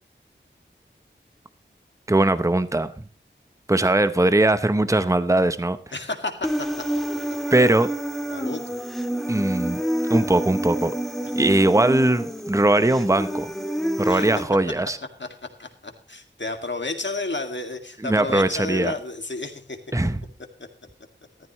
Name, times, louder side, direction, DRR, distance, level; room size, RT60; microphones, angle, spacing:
voice 1, 2.1-2.9 3.7-5.8 7.5-7.9 9.3-9.8 10.1-10.9 11.4-13.5 14.0-15.0 18.0-18.9 19.9-20.2, right 2 dB, 15° right, 12 dB, 0.8 m, -20 dB
voice 2, 5.9-6.5 8.3-8.7 14.1-14.3 15.6-19.8, left 2 dB, 65° left, 5 dB, 2.2 m, -31 dB
Human voice, 6.4-14.4, right 1 dB, ahead, 1.8 m, -28 dB
14.0 x 14.0 x 3.1 m, 0.42 s
wide cardioid pair, 55°, 20 cm